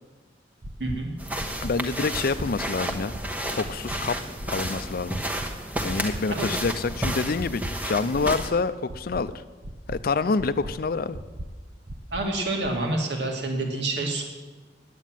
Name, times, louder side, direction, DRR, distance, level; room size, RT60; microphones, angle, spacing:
sound 1, 0.6-1.0 1.4-1.7 2.1-2.5 2.9-3.2 3.6-4.0 4.4-4.7 5.1-5.5 5.9-6.2 6.6-7.0 7.4-7.7 8.1-8.5 8.9-9.2 9.6-10.0 10.4-10.7 11.1-11.5 11.9-12.2 12.6-12.7, right 1 dB, 40° right, 0.8 m, -36 dB
voice 1, 0.8-1.1 5.9-6.5 12.1-14.2, right 2 dB, 65° right, 1 dB, 2.4 m, -28 dB
sound 2, 1.2-8.5, right 1 dB, 10° right, 1.2 m, -32 dB
voice 2, 1.6-3.1 3.5-4.2 4.5-5.2 5.8-9.3 9.9-11.2, left 4 dB, 55° left, 14 dB, 0.5 m, -27 dB
10.5 x 8.5 x 9.1 m, 1.3 s
head